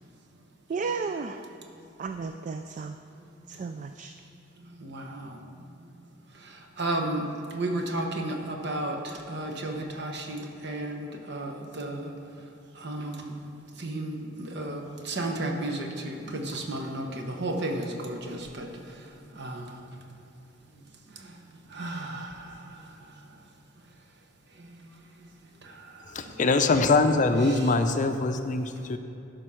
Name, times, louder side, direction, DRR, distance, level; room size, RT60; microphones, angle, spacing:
voice 1, 0.7-1.4 2.0-3.0 3.6-4.1, right 4 dB, 40° right, 7 dB, 0.3 m, -33 dB
voice 2, 6.8-7.2 7.5-8.3 8.6-8.9 9.3-10.4 10.6-10.9 11.3-11.5 11.8-11.9 12.8-13.2 13.8-14.1 14.6-14.8 15.2-15.7 16.5-17.0 17.4-18.2 18.6-18.7 19.4-19.5 21.8-22.0, right 2 dB, 60° right, 2 dB, 1.1 m, -31 dB
voice 3, 26.1-29.0, left 3 dB, 40° left, 8 dB, 0.5 m, -23 dB
12.0 x 5.3 x 5.7 m, 2.8 s
head